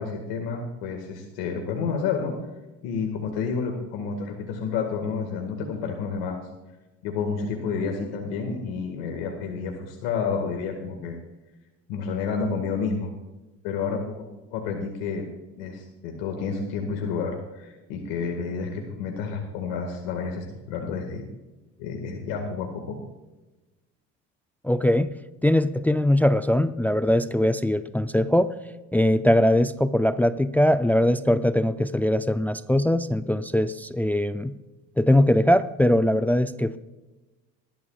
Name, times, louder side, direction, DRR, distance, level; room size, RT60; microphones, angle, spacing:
voice 1, 0.0-2.3 2.8-6.4 7.0-11.2 11.9-13.1 13.6-14.2 14.5-15.2 15.6-21.2 21.8-23.0, left 5 dB, 80° left, 2 dB, 2.0 m, -30 dB
voice 2, 24.6-25.1 25.4-28.5 28.9-34.5 35.0-36.8, left 1 dB, 5° left, 11 dB, 0.4 m, -21 dB
20.5 x 12.5 x 2.4 m, 1.1 s
supercardioid pair, 80°, 34 cm